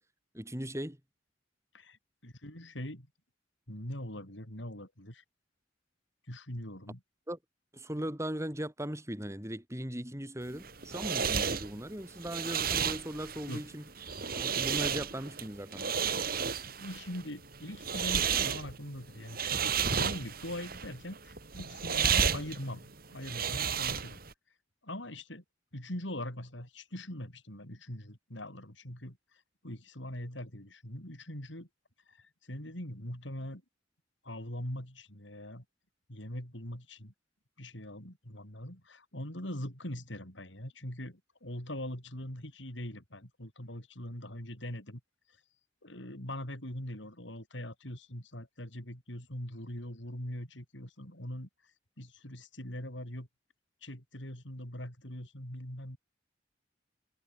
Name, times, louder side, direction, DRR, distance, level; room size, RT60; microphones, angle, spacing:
voice 1, 0.3-1.0 7.3-7.4 7.7-13.9 14.3-15.9, equal, 15° right, 4.6 m, -38 dB
voice 2, 2.2-3.1 3.7-5.2 6.3-7.0 13.5-13.6 16.4-24.2 24.8-25.4 25.7-29.2 29.6-31.7 32.1-33.6 34.2-35.6 36.1-37.1 37.6-45.0 45.8-51.5 52.0-53.3 53.8-56.0, left 1 dB, 75° left, 7.7 m, -42 dB
sound 1, 10.5-24.3, right 7 dB, 50° right, 3.3 m, -32 dB
head